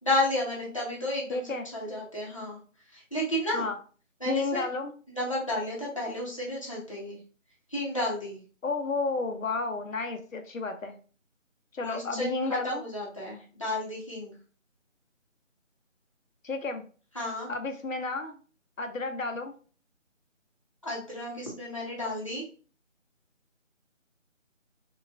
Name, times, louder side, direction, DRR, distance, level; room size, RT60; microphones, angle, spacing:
voice 1, 0.0-1.4 1.7-2.6 2.9-3.7 4.2-4.6 5.1-7.2 7.7-8.4 11.8-14.3 17.1-17.5 20.8-22.4, left 1 dB, 25° left, -5 dB, 0.6 m, -32 dB
voice 2, 1.3-1.6 3.5-3.8 4.3-4.9 8.6-11.0 11.7-12.8 16.4-16.8 17.5-18.4 18.8-19.5, left 3 dB, 85° left, 6 dB, 0.7 m, -31 dB
4.0 x 2.3 x 2.2 m, 0.39 s
figure-of-eight pair, 160°, 39 cm